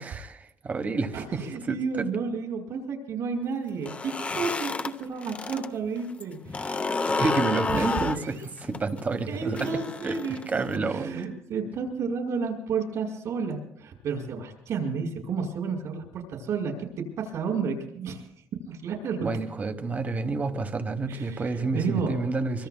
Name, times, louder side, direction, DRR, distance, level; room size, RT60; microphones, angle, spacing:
voice 1, 0.0-2.1 7.2-9.7 10.0-10.2 10.5-11.3 19.2-22.7, right 3 dB, 25° right, 10 dB, 1.1 m, -29 dB
voice 2, 1.1-7.0 7.8-8.3 9.3-18.2 18.6-19.4 21.1-22.1, right 5 dB, 65° right, 0 dB, 5.6 m, -32 dB
sound 1, 3.7-5.7 6.0-10.8, left 3 dB, 20° left, 0.7 m, -30 dB
25.0 x 24.5 x 2.2 m, 0.70 s
cardioid pair, 145°, 6 cm